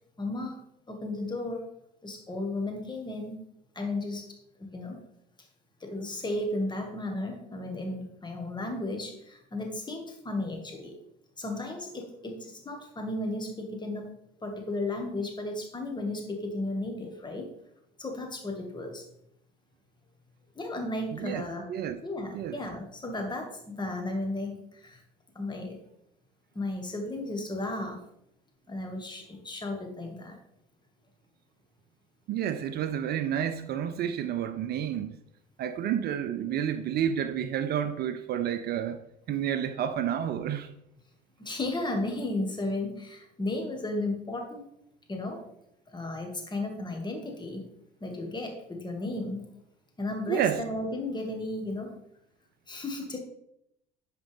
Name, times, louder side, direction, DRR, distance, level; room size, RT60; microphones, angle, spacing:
voice 1, 0.2-0.6 0.9-1.7 2.0-3.4 3.8-4.3 4.6-5.0 5.8-11.0 11.4-14.1 14.4-17.5 18.0-19.0 20.6-21.7 22.0-25.0 25.4-25.8 26.5-28.0 28.7-30.4 36.5-36.6 41.4-44.6 45.1-45.4 45.9-47.6 48.0-49.5 50.0-52.0 52.7-53.2, left 2 dB, 20° left, 2.1 m, -34 dB
voice 2, 21.1-21.4 21.7-22.0 22.3-22.6 32.3-35.1 35.6-39.0 39.3-40.7 50.3-50.6, right 9 dB, 50° right, 0.6 m, -30 dB
10.0 x 5.0 x 3.6 m
hypercardioid pair, 70°, 21 cm